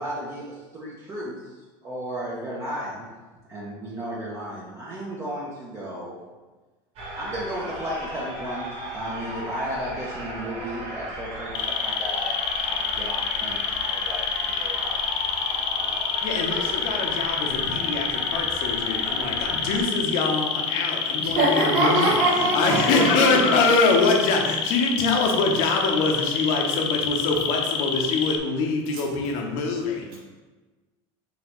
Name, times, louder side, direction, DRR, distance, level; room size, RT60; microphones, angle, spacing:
voice 1, 0.0-1.6 1.8-3.1 3.5-6.2 7.2-15.1, equal, 25° right, -6 dB, 0.7 m, -34 dB
sound 1, 7.0-19.8, right 1 dB, 50° right, 1.1 m, -36 dB
sound 2, 11.5-28.4, left 7 dB, 45° left, 0.4 m, -27 dB
voice 2, 16.2-30.1, left 3 dB, 65° left, 1 dB, 0.8 m, -24 dB
voice 3, 21.2-23.6, right 2 dB, 75° right, -4 dB, 1.2 m, -23 dB
3.9 x 3.1 x 3.0 m, 1.3 s
supercardioid pair, 130°, 13 cm